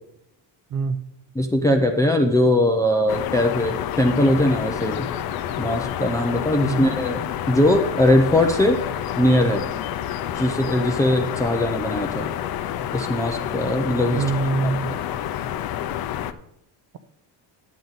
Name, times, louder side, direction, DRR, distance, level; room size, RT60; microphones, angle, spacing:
voice 1, 1.4-5.1 5.6-8.8 9.2-9.7 10.4-12.3 12.9-14.2, left 1 dB, 10° left, 3 dB, 0.4 m, -20 dB
sound 1, 3.1-16.3, left 10 dB, 55° left, 0.6 m, -29 dB
voice 2, 14.1-14.9, right 4 dB, 45° right, 11 dB, 0.7 m, -24 dB
10.5 x 7.8 x 4.0 m, 0.78 s
cardioid pair, 165°, 45 cm